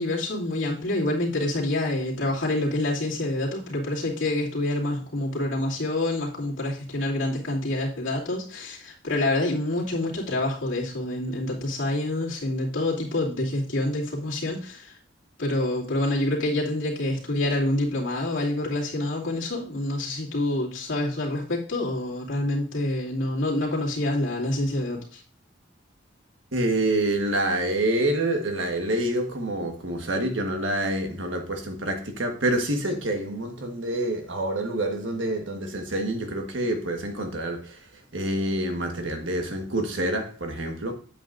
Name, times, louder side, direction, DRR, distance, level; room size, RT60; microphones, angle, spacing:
voice 1, 0.0-14.9 15.4-25.2, left 1 dB, 85° left, 2.6 m, -27 dB
voice 2, 26.5-37.9 38.1-40.9, right 1 dB, 75° right, 1.4 m, -27 dB
8.9 x 7.8 x 2.6 m
head